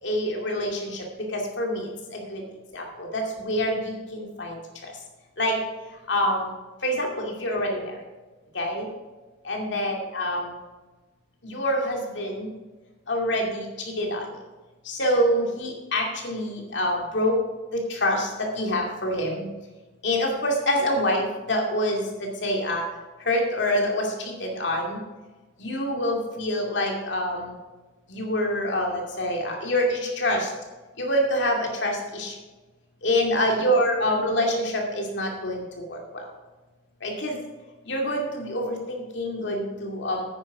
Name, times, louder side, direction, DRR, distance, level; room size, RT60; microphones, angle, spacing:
voice 1, 0.0-1.0 1.3-2.4 2.7-4.9 5.4-5.6 6.1-6.5 6.8-7.9 8.5-8.9 9.4-10.5 11.4-12.5 13.1-13.7 14.0-14.2 14.9-17.4 17.7-19.5 20.0-22.8 23.3-25.0 25.6-27.5 28.1-30.5 31.0-32.3 33.0-36.0 37.0-37.4 37.9-40.2, equal, 70° left, 0 dB, 2.4 m, -26 dB
9.7 x 9.7 x 4.8 m, 1.2 s
head